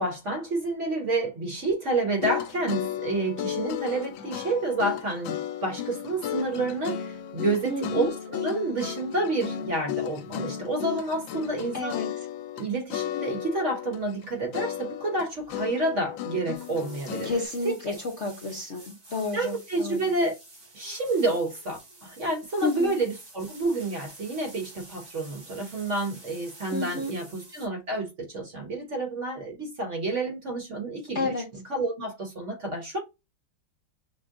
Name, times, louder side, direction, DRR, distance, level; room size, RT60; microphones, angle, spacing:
voice 1, 0.0-12.0 12.6-17.3 17.6-18.0 19.3-20.4 20.7-33.0, right 2 dB, 45° right, 1.2 m, -29 dB
sound 1, 2.1-12.6 12.9-14.3 14.5-17.4, left 9 dB, 80° left, 1.3 m, -34 dB
voice 2, 7.6-8.1 11.7-12.1 17.2-18.0 18.2-20.0 22.6-22.9 26.7-27.1 31.1-31.5, left 3 dB, 50° left, 0.9 m, -30 dB
sound 2, 16.5-27.7, right 2 dB, 90° right, 3.7 m, -49 dB
6.0 x 2.2 x 3.6 m
omnidirectional pair, 2.1 m